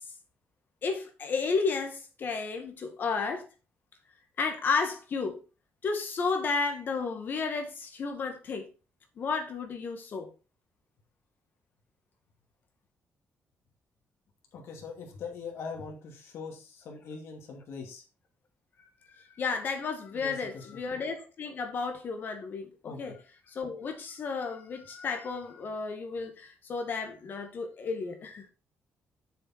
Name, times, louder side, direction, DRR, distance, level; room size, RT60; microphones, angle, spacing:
voice 1, 0.8-3.5 4.4-5.4 5.8-8.7 9.2-10.3 19.4-23.1 23.5-28.5, left 4 dB, 50° left, 1.9 m, -32 dB
voice 2, 14.5-18.0 20.1-20.7 22.8-23.1, left 5 dB, 80° left, 2.4 m, -42 dB
7.0 x 6.9 x 4.3 m
cardioid pair, 140°, 4 cm